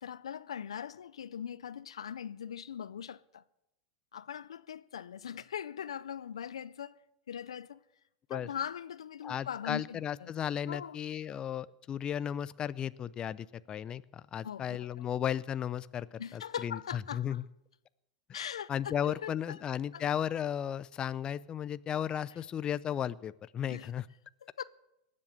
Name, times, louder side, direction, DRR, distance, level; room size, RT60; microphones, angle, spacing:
voice 1, 0.0-3.4 4.1-7.0 7.3-7.8 8.3-10.3 10.7-11.0 14.4-14.9 16.2-17.4 18.3-18.7 19.0-19.6 19.9-20.0 23.7-23.9 24.4-24.6, left 8 dB, 90° left, 0.5 m, -41 dB
voice 2, 9.2-17.4 18.7-24.1, left 9 dB, 30° left, 0.5 m, -35 dB
19.0 x 7.6 x 8.0 m
hypercardioid pair, 105°, 3 cm